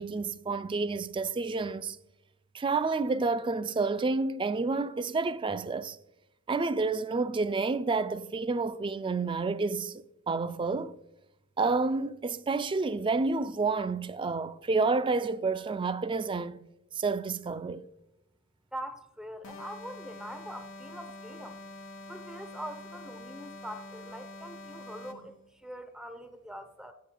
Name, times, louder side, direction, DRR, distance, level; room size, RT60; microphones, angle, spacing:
voice 1, 0.0-2.0 2.5-6.0 6.5-11.0 11.6-16.6 16.9-17.8, right 3 dB, 25° right, 0.3 m, -29 dB
voice 2, 18.7-21.6 22.1-26.9, equal, 5° right, 0.7 m, -43 dB
sound 1, 19.4-25.3, left 2 dB, 65° left, 1.2 m, -46 dB
14.5 x 7.5 x 2.3 m
head